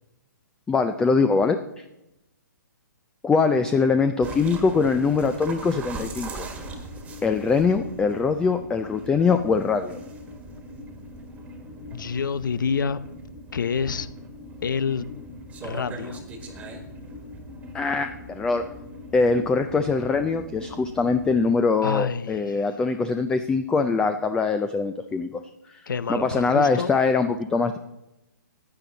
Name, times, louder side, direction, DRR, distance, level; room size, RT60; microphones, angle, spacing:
voice 1, 0.7-1.8 3.2-6.5 7.2-10.0 17.7-18.7 19.1-25.4 25.7-25.8 26.1-27.8, left 4 dB, 5° left, 0.4 m, -22 dB
sound 1, 4.2-21.5, right 1 dB, 10° right, 1.5 m, -40 dB
voice 2, 11.9-13.0 13.5-14.1 14.6-15.1 15.6-16.2 21.8-22.6 25.9-26.9, left 6 dB, 80° left, 0.8 m, -27 dB
15.0 x 9.9 x 3.9 m
hypercardioid pair, 150°, 11 cm